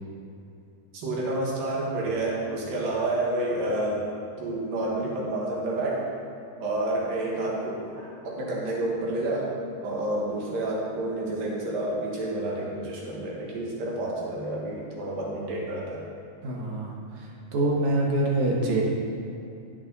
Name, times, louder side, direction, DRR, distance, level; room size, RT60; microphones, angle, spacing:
voice 1, 0.9-4.1 4.4-6.1 6.6-9.5 9.8-16.0, right 1 dB, 80° right, -3 dB, 3.4 m, -29 dB
voice 2, 16.4-16.9 17.5-18.8, right 2 dB, 60° right, -2 dB, 2.5 m, -24 dB
15.5 x 6.3 x 4.1 m, 2.7 s
omnidirectional pair, 3.9 m